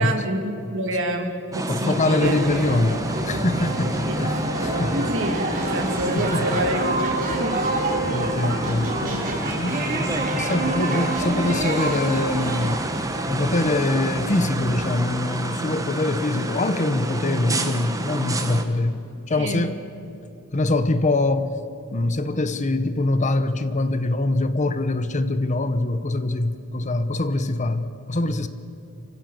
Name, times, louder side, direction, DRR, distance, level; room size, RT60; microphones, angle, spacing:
voice 1, 0.0-2.4 5.1-7.6 19.3-19.6, right 1 dB, 65° right, 4 dB, 2.4 m, -27 dB
sound 1, 1.5-18.6, right 1 dB, 15° right, 1.3 m, -29 dB
voice 2, 1.7-4.4 4.6-5.1 6.1-6.6 8.1-9.3 9.6-12.8 13.3-19.0 19.3-19.8 20.5-21.6 21.9-28.5, left 2 dB, 35° left, 11 dB, 0.9 m, -24 dB
sound 2, 2.2-15.0, right 2 dB, 40° right, 3.2 m, -28 dB
26.0 x 15.5 x 7.3 m, 2.8 s
head